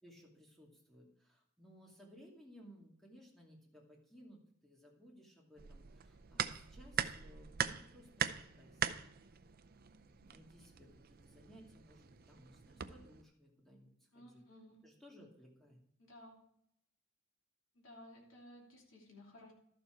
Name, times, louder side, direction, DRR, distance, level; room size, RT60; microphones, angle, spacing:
voice 1, 0.0-9.0 10.0-14.4 14.8-15.8, equal, ahead, -2 dB, 2.5 m, -60 dB
sound 1, 5.6-13.2, right 8 dB, 50° right, 0.5 m, -42 dB
voice 2, 14.1-14.8 16.0-16.4 17.7-19.5, left 1 dB, 75° left, -2 dB, 2.9 m, -57 dB
12.5 x 7.0 x 4.6 m, 0.73 s
head